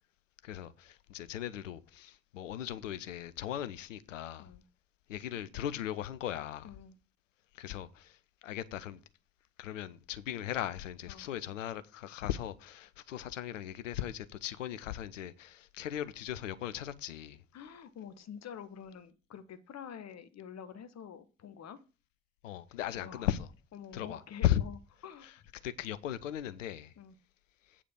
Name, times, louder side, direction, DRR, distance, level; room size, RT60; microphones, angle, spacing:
voice 1, 0.4-4.5 5.1-6.7 7.5-9.0 9.6-17.4 22.4-23.5 23.9-24.6 25.2-25.3 25.6-26.9, left 12 dB, 80° left, 0.7 m, -37 dB
voice 2, 6.6-7.0 11.1-11.3 17.5-21.8 22.9-23.3 23.7-24.8 25.0-25.3 27.0-27.1, left 8 dB, 45° left, 1.2 m, -47 dB
8.5 x 4.9 x 7.4 m
figure-of-eight pair, 50°, 38 cm